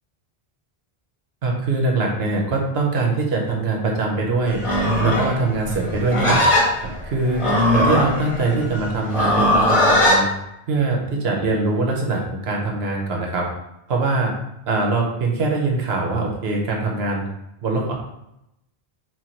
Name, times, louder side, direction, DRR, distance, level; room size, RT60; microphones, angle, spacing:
voice 1, 1.4-4.6 5.0-6.4 6.7-7.4 7.7-10.3 10.7-13.5 13.9-14.3 14.7-17.2 17.6-17.9, right 3 dB, 85° right, 0 dB, 1.1 m, -22 dB
Livestock farm animals working animals, 4.5-10.2, left 1 dB, 35° left, 0.9 m, -19 dB
4.4 x 2.2 x 4.4 m, 0.84 s
omnidirectional pair, 1.0 m